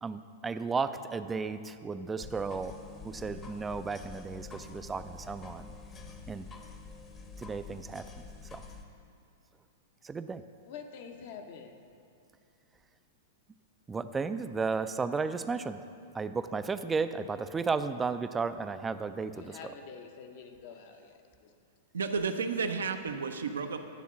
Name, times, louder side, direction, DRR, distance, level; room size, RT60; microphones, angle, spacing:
voice 1, 0.0-2.7 3.0-5.7 6.3-6.4 7.4-8.0 8.5-8.6 10.0-10.4 13.9-15.8 16.1-19.5, right 4 dB, 15° right, 11 dB, 0.3 m, -34 dB
sound 1, 2.2-8.8, left 4 dB, 25° left, 0.8 m, -47 dB
voice 2, 10.6-11.8 19.3-21.5, left 6 dB, 60° left, 5 dB, 0.8 m, -47 dB
voice 3, 21.9-23.8, right 5 dB, 85° right, 7 dB, 0.5 m, -32 dB
9.4 x 3.7 x 7.1 m, 2.5 s
hypercardioid pair, 110°, 0 cm